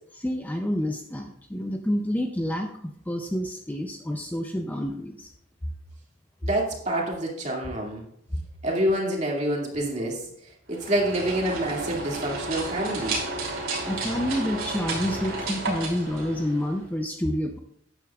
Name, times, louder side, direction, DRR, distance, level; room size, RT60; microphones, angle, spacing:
voice 1, 0.1-5.3 8.3-8.4 13.8-17.6, equal, 10° left, 4 dB, 0.5 m, -28 dB
voice 2, 6.4-8.0 8.6-10.2 10.7-13.2, right 1 dB, 35° right, -2 dB, 2.3 m, -27 dB
sound 1, 10.7-16.9, right 2 dB, 90° right, 2.8 m, -32 dB
12.5 x 9.4 x 2.4 m, 0.72 s
head